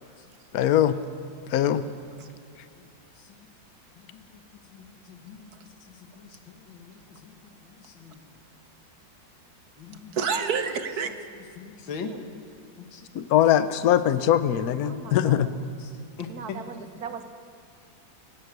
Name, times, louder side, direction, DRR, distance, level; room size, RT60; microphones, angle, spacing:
voice 1, 0.5-1.0 1.5-1.8 13.1-15.5, left 11 dB, 60° left, 13 dB, 1.2 m, -21 dB
voice 2, 3.2-3.5 3.9-4.4 4.7-7.4 7.6-8.2 9.8-10.2 11.0-12.2 12.8-13.1 15.6-17.0, left 5 dB, 80° left, 7 dB, 2.3 m, -43 dB
voice 3, 10.1-11.1 12.0-12.2 14.8-15.5 16.3-17.2, right 6 dB, 55° right, 9 dB, 1.5 m, -31 dB
17.5 x 17.0 x 9.5 m, 2.2 s
omnidirectional pair, 2.1 m